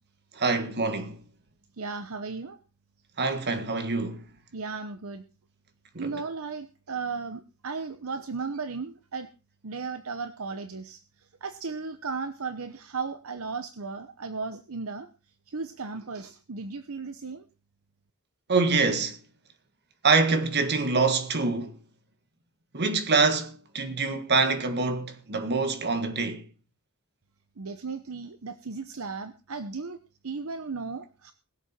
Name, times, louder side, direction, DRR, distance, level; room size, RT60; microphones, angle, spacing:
voice 1, 0.3-1.2 3.2-4.2 5.9-6.2 18.5-19.2 20.0-21.8 22.7-26.5, right 4 dB, 50° right, 1.7 m, -25 dB
voice 2, 1.8-2.6 4.5-5.2 6.0-9.3 9.6-11.0 11.4-15.1 15.5-17.4 27.6-30.0 30.2-31.3, right 4 dB, 70° right, 0.9 m, -35 dB
20.5 x 7.5 x 4.4 m
head